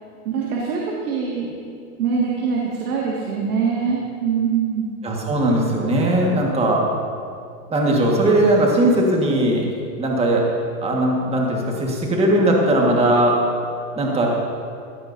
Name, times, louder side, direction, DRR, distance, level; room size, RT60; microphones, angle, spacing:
voice 1, 0.2-1.5 2.0-4.9, right 6 dB, 80° right, -3 dB, 2.2 m, -23 dB
voice 2, 5.0-6.8 7.7-10.4 10.8-13.4 13.9-14.3, right 1 dB, 15° right, -1 dB, 1.7 m, -19 dB
15.5 x 13.5 x 2.7 m, 2.4 s
hypercardioid pair, 135°, 45 cm